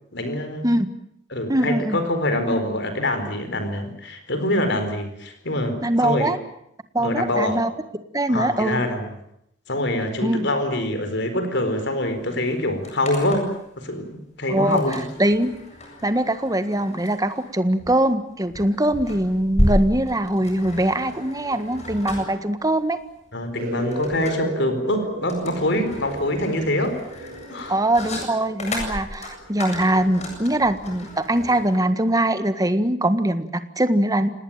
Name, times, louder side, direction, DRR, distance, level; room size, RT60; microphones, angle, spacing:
voice 1, 0.1-0.7 1.3-6.4 7.0-7.6 8.3-9.1 9.7-13.5 13.8-15.1 23.3-27.8, left 1 dB, 60° left, 8 dB, 4.5 m, -25 dB
voice 2, 1.5-2.0 5.8-6.4 6.9-7.7 8.1-8.8 10.2-10.5 14.5-14.8 15.2-15.5 16.0-23.0 27.7-34.3, right 1 dB, 20° right, 10 dB, 1.6 m, -22 dB
sound 1, 12.0-12.1 12.4-13.6 14.7-31.8, left 1 dB, 35° left, 7.9 m, -32 dB
sound 2, 23.6-29.7, right 1 dB, 55° right, 7.9 m, -35 dB
27.0 x 19.5 x 8.9 m, 0.75 s
head